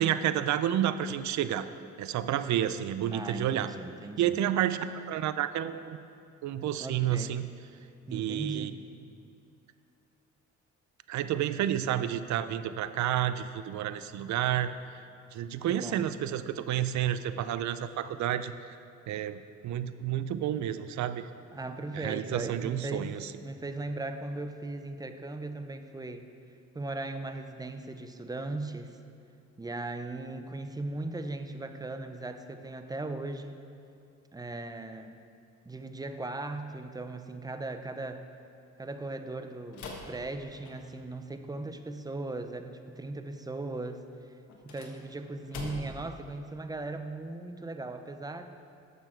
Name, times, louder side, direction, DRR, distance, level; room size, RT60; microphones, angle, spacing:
voice 1, 0.0-1.7 2.0-3.7 4.2-6.0 6.4-7.5 8.1-8.7 11.1-14.7 15.3-18.5 19.1-21.3 21.9-23.3, right 11 dB, 70° right, 12 dB, 0.5 m, -30 dB
voice 2, 3.1-4.3 6.8-7.4 8.0-8.8 15.7-16.1 21.5-26.3 26.7-29.0 29.6-33.6 34.3-35.2 35.7-38.3 38.8-44.0 44.6-48.5, right 2 dB, 15° right, 8 dB, 0.6 m, -38 dB
sound 1, 39.7-41.1 44.5-46.1, left 3 dB, 75° left, 1.5 m, -44 dB
11.5 x 6.9 x 4.5 m, 2.4 s
cardioid pair, 90°, 30 cm